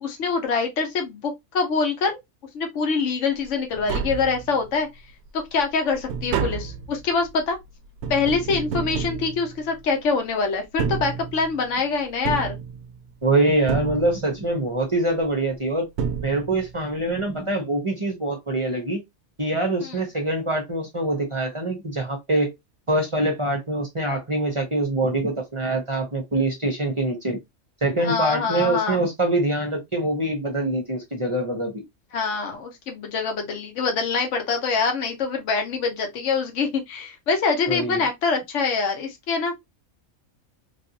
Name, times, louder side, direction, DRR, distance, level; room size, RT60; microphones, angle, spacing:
voice 1, 0.0-2.2 2.5-4.9 5.3-7.6 8.1-12.6 19.8-20.0 28.0-29.0 32.1-39.6, left 4 dB, 65° left, 1.2 m, -25 dB
Tap, 3.4-3.5 3.7-4.8 5.3-10.0 10.6-11.7 12.2-13.2 13.7-14.5 15.5-15.6 16.0-16.8 17.1-17.2, right 6 dB, 65° right, 0.7 m, -30 dB
voice 2, 13.2-15.9 16.2-19.0 19.4-22.5 22.9-27.4 27.8-31.8 37.7-38.1, right 2 dB, 30° right, 0.7 m, -24 dB
3.2 x 2.6 x 2.8 m
omnidirectional pair, 1.4 m